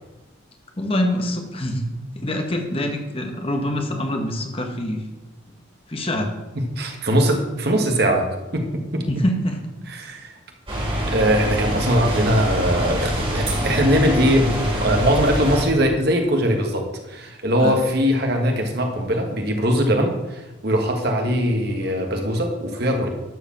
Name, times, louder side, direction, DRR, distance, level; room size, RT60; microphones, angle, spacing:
voice 1, 0.8-1.9 2.1-5.1 5.9-6.3 9.1-9.6 17.6-17.8, left 1 dB, 25° left, 4 dB, 1.1 m, -25 dB
voice 2, 6.5-8.3 8.5-9.0 9.9-10.3 11.1-23.1, equal, 50° right, 3 dB, 1.6 m, -21 dB
sound 1, 10.7-15.7, equal, 25° right, 2.9 m, -25 dB
12.0 x 5.0 x 7.3 m, 1.1 s
head